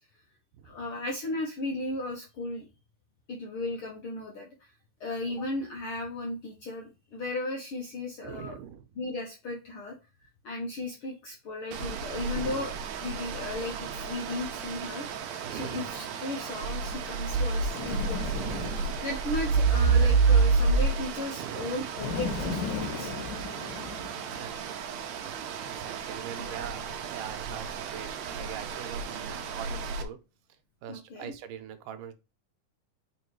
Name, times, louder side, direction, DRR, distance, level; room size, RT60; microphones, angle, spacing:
voice 1, 0.6-2.6 3.3-4.7 5.0-8.6 9.0-9.9 10.4-12.7 13.0-18.3 19.0-23.1 26.4-26.7 30.9-31.3, left 2 dB, 65° left, 1 dB, 1.3 m, -36 dB
voice 2, 8.2-8.9 12.3-12.8 13.3-13.6 15.4-15.9 16.2-16.6 18.3-19.1 21.4-21.9 24.1-25.3 25.7-30.2 30.8-32.1, right 9 dB, 85° right, 9 dB, 2.4 m, -43 dB
sound 1, 11.7-30.0, right 5 dB, 70° right, 1.9 m, -30 dB
Bird, 17.7-19.1 22.0-24.5, left 5 dB, 85° left, 2.9 m, -35 dB
5.8 x 3.7 x 4.7 m, 0.28 s
omnidirectional pair, 3.7 m